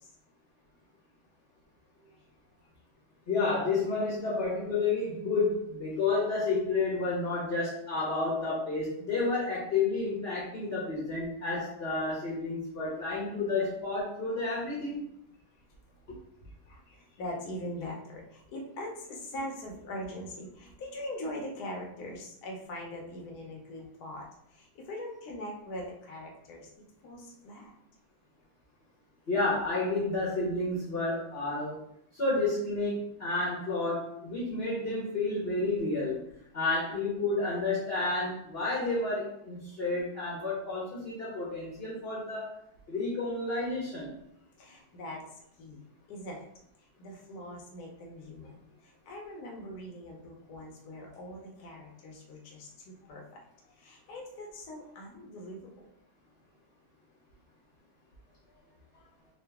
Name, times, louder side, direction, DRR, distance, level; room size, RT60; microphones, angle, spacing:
voice 1, 3.3-15.0 16.1-16.2 29.3-31.8 32.1-36.2 36.5-42.5 42.9-44.2, left 3 dB, 40° left, -6 dB, 0.9 m, -30 dB
voice 2, 16.7-24.2 24.5-26.7 27.0-27.7 44.6-45.2 45.6-45.8 46.1-46.4 47.0-48.5 48.8-53.2 53.8-55.7 58.5-58.6 58.9-59.1, left 1 dB, 60° left, -1 dB, 1.2 m, -42 dB
3.8 x 2.4 x 3.5 m, 0.74 s
omnidirectional pair, 2.1 m